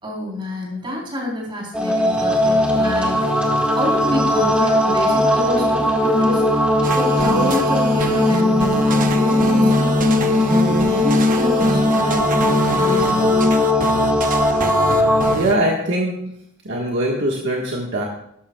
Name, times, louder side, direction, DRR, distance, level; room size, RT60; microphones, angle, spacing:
voice 1, 0.0-10.1 10.5-13.5, left 1 dB, 25° right, -2 dB, 3.8 m, -28 dB
sound 1, 1.7-15.4, left 1 dB, 5° right, 1.7 m, -18 dB
sound 2, 6.8-15.6, right 3 dB, 40° right, 0.8 m, -27 dB
voice 2, 15.3-16.3 16.6-18.0, right 1 dB, 60° right, -2 dB, 1.5 m, -22 dB
13.0 x 11.5 x 2.3 m, 0.75 s
head